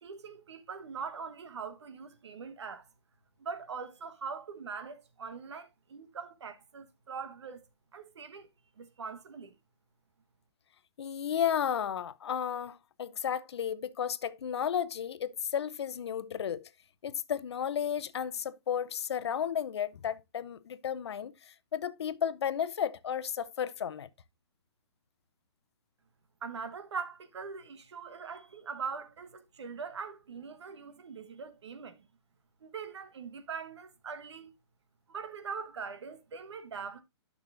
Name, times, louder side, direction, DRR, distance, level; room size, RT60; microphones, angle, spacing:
voice 1, 0.0-2.9 3.4-7.6 7.9-8.5 8.8-9.5 26.4-32.1 32.6-34.5 35.1-37.0, right 5 dB, 80° right, 1.5 m, -42 dB
voice 2, 11.0-16.7 17.0-24.1, left 8 dB, 70° left, 0.7 m, -33 dB
11.5 x 6.1 x 2.6 m
hypercardioid pair, 160°, 14 cm